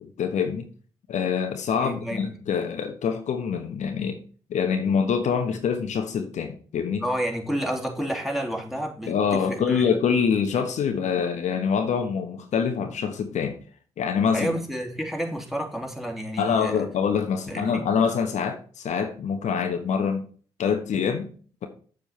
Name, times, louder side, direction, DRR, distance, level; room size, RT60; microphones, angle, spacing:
voice 1, 0.2-0.7 1.1-4.2 4.5-7.0 9.1-13.6 14.0-14.6 16.4-20.3 20.6-21.3, left 6 dB, 60° left, 6 dB, 1.1 m, -25 dB
voice 2, 1.8-2.4 6.9-9.9 14.3-16.9 17.5-17.8, equal, ahead, 1 dB, 3.1 m, -30 dB
7.7 x 7.3 x 4.3 m, 0.42 s
hypercardioid pair, 45°, 14 cm